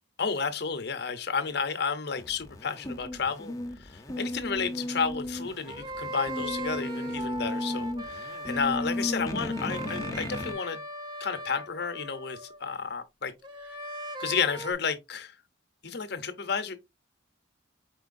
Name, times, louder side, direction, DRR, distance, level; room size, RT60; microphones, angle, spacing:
voice 1, 0.2-3.5 3.8-10.8 11.2-13.3 14.2-15.3 15.8-16.8, left 5 dB, 55° left, 0.7 m, -32 dB
sound 1, 2.1-10.5, left 1 dB, 15° left, 0.7 m, -35 dB
sound 2, 5.6-12.7 13.4-14.7, right 1 dB, 25° right, 0.6 m, -39 dB
4.5 x 4.5 x 2.5 m
head